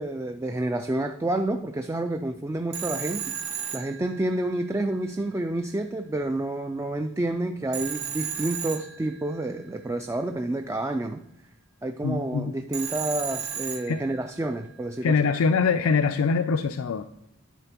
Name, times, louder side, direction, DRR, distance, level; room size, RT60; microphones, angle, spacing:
voice 1, 0.0-3.2 3.7-11.2 11.8-15.2, right 1 dB, 15° right, 7 dB, 0.3 m, -29 dB
Telephone, 2.7-4.7 7.7-9.5 12.7-14.4, right 8 dB, 50° right, 1.6 m, -34 dB
voice 2, 12.0-12.5 13.9-14.0 15.0-17.0, left 5 dB, 75° left, 9 dB, 0.4 m, -23 dB
10.0 x 4.3 x 5.9 m, 0.83 s
head